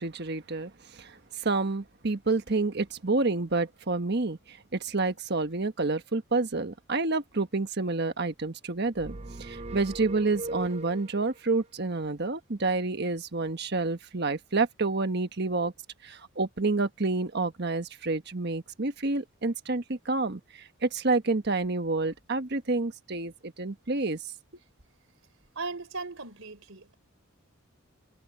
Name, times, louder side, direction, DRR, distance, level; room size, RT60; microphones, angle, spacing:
voice 1, 0.0-15.7 16.0-24.2, right 3 dB, 55° right, 1.3 m, -29 dB
sound 1, 9.0-11.4, right 1 dB, 30° right, 0.6 m, -39 dB
voice 2, 25.6-26.9, right 3 dB, 75° right, 3.5 m, -37 dB
head